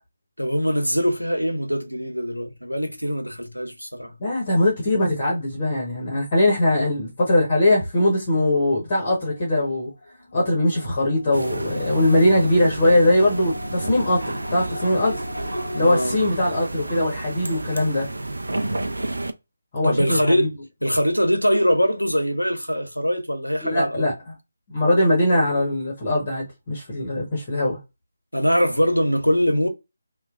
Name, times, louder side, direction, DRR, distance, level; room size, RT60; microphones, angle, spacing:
voice 1, 0.4-4.1 15.8-16.2 19.8-20.5 20.8-24.1 28.3-29.7, equal, 90° left, 0.7 m, -22 dB
voice 2, 4.2-9.9 10.3-15.2 15.7-18.1 19.7-20.5 23.6-24.1 24.7-27.8, left 1 dB, 25° left, 1.1 m, -21 dB
sound 1, 9.3-16.1, left 1 dB, 55° left, 0.8 m, -38 dB
sound 2, 11.3-19.3, right 2 dB, 65° right, 0.4 m, -31 dB
3.0 x 2.3 x 2.4 m
figure-of-eight pair, 155°, 0 cm